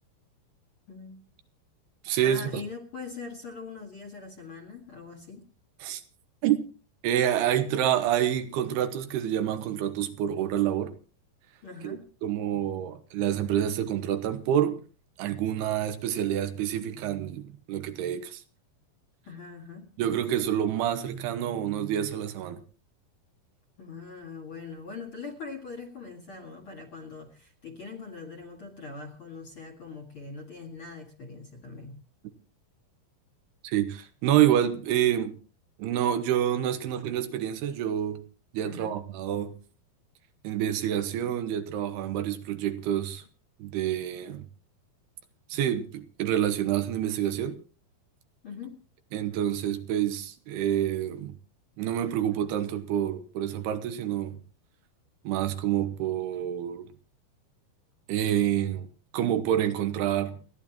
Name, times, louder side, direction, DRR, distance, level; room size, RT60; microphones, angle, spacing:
voice 1, 0.9-1.3 2.2-5.5 11.6-12.1 19.2-19.9 23.8-32.0 38.6-39.0 48.4-48.8, left 4 dB, 40° left, 2.2 m, -42 dB
voice 2, 2.0-2.6 5.8-6.0 6.4-6.6 7.0-10.9 11.8-14.8 15.2-18.4 20.0-22.6 33.6-35.4 35.8-38.2 38.5-39.5 40.4-43.2 43.6-44.5 45.5-47.6 49.1-51.3 51.8-54.4 55.2-56.9 58.1-58.9 59.1-60.4, right 10 dB, 85° right, 3.1 m, -27 dB
29.0 x 10.5 x 3.0 m
omnidirectional pair, 4.6 m